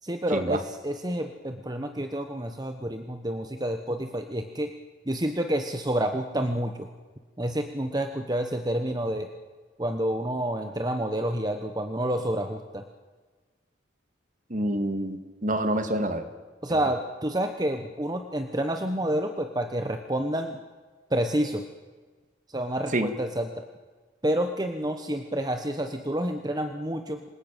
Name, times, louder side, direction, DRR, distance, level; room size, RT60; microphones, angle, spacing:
voice 1, 0.0-4.7 5.1-6.9 7.4-9.3 9.8-12.8 16.6-20.6 21.1-21.7 22.5-23.6 24.2-27.2, right 1 dB, 20° right, 6 dB, 1.1 m, -29 dB
voice 2, 14.5-16.2 22.9-23.1, right 1 dB, 40° right, 8 dB, 2.1 m, -27 dB
26.5 x 19.0 x 9.1 m, 1.4 s
head